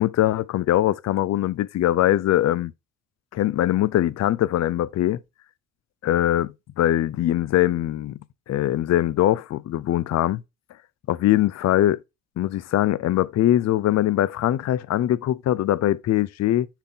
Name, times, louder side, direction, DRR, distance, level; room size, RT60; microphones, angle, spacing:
voice 1, 0.0-2.7 3.3-5.2 6.0-8.2 8.5-10.4 11.1-12.0 12.4-16.7, left 13 dB, 60° left, 0.6 m, -22 dB
10.5 x 3.8 x 4.0 m
cardioid pair, 90°, 30 cm